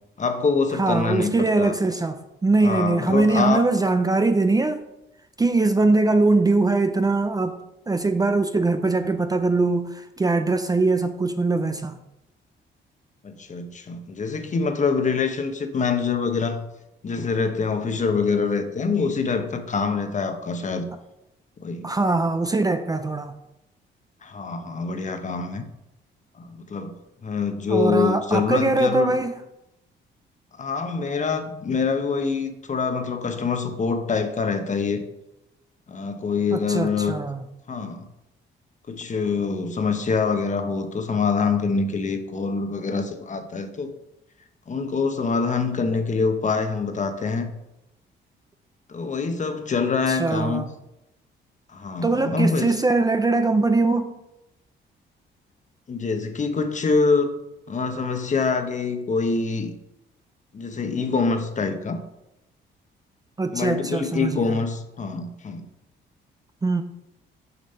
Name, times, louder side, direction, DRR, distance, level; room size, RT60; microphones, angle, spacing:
voice 1, 0.2-1.7 2.6-3.7 13.2-16.6 17.0-20.9 21.6-21.9 24.2-25.7 26.4-26.9 27.2-29.1 30.5-35.0 35.9-37.1 37.7-38.1 38.9-43.9 44.7-47.5 48.9-50.7 51.7-52.7 55.9-57.4 57.7-59.7 60.5-62.0 63.5-65.7, left 4 dB, 40° left, 1.0 m, -25 dB
voice 2, 0.8-4.8 5.4-7.6 7.9-12.0 21.8-23.4 27.7-29.3 36.5-37.4 50.1-50.7 52.0-54.1 63.4-64.6 66.6-66.8, right 3 dB, 20° right, 0.5 m, -22 dB
6.8 x 5.1 x 5.6 m
cardioid pair, 90°, 20 cm